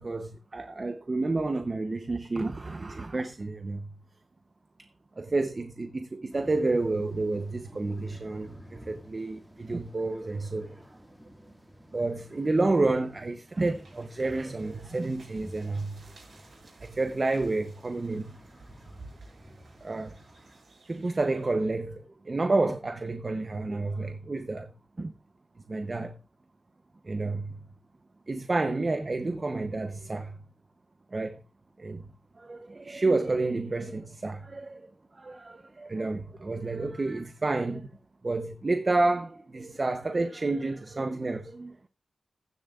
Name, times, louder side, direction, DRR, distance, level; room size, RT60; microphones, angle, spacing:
voice 1, 0.0-3.9 4.8-4.9 5.2-10.8 11.9-16.0 16.8-18.4 19.8-20.2 20.9-24.7 25.0-25.1 25.7-26.2 27.0-27.6 28.3-30.4 31.1-31.4 31.8-32.0 32.4-34.8 35.2-37.9 38.2-41.8, right 2 dB, 30° right, 0.8 m, -30 dB
sound 1, 6.3-20.6, equal, 5° right, 2.2 m, -52 dB
sound 2, 13.4-21.9, right 3 dB, 60° right, 6.7 m, -54 dB
16.0 x 11.0 x 2.4 m
wide cardioid pair, 165°, 0 cm